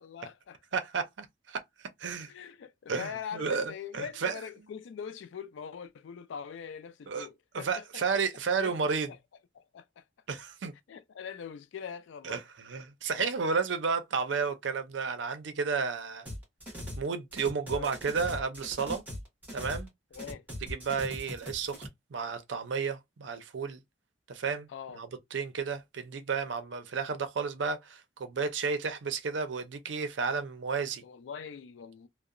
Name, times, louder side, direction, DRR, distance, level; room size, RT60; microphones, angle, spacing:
voice 1, 0.0-0.6 2.2-8.2 8.6-8.8 9.1-9.2 9.5-10.0 10.9-12.4 13.2-13.3 17.7-17.9 20.1-20.4 24.7-25.0 31.0-32.1, left 7 dB, 80° left, 0.3 m, -42 dB
voice 2, 0.7-1.6 2.0-2.3 2.9-4.4 7.1-7.3 7.5-9.1 10.3-10.7 12.2-16.3 17.0-19.0 19.5-19.9 20.7-23.8 24.3-24.7 24.9-31.0, right 5 dB, 75° right, 0.5 m, -32 dB
sound 1, 16.3-17.1 17.3-19.9 20.1-21.9, equal, 10° right, 1.0 m, -40 dB
2.7 x 2.0 x 2.4 m
head